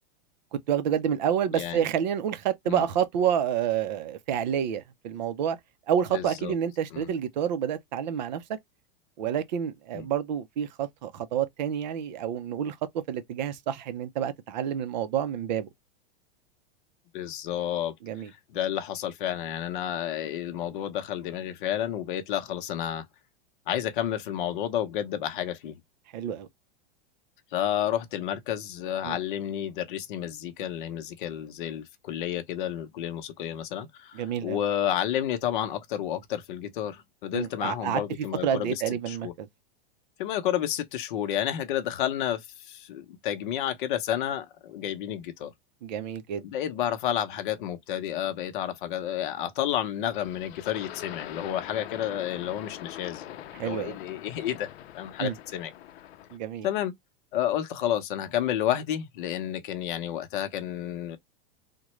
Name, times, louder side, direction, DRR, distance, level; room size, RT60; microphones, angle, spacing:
voice 1, 0.5-5.6 5.9-8.6 9.2-15.7 18.0-18.3 26.1-26.5 29.0-29.2 34.1-34.6 37.3-38.0 38.4-39.5 45.8-46.4 53.6-54.0 55.2-55.3 56.3-56.7, right 9 dB, 45° right, 0.5 m, -29 dB
voice 2, 1.5-1.9 2.7-2.8 6.1-6.6 6.9-7.1 9.9-10.1 17.1-17.9 18.2-23.0 23.7-25.8 27.5-38.8 39.1-39.3 40.2-45.5 46.4-54.7 54.9-55.7 56.6-56.9 57.3-61.2, left 11 dB, 55° left, 0.7 m, -31 dB
sound 1, 50.1-56.4, left 12 dB, 90° left, 0.6 m, -43 dB
3.6 x 2.2 x 3.0 m
supercardioid pair, 175°, 30 cm